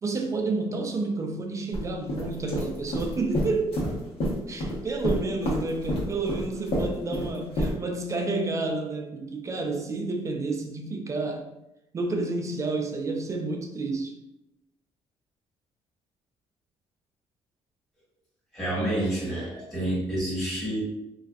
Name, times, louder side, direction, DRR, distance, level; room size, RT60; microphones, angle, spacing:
voice 1, 0.0-3.8 4.5-11.5 11.9-14.1, right 3 dB, 30° right, 4 dB, 0.3 m, -30 dB
sound 1, 1.7-1.8 2.1-4.8 5.0-7.7, equal, 65° left, 0.9 m, -28 dB
voice 2, 18.5-20.8, right 1 dB, 5° left, -9 dB, 1.2 m, -28 dB
2.5 x 2.3 x 2.2 m, 0.89 s
cardioid pair, 100°, 11 cm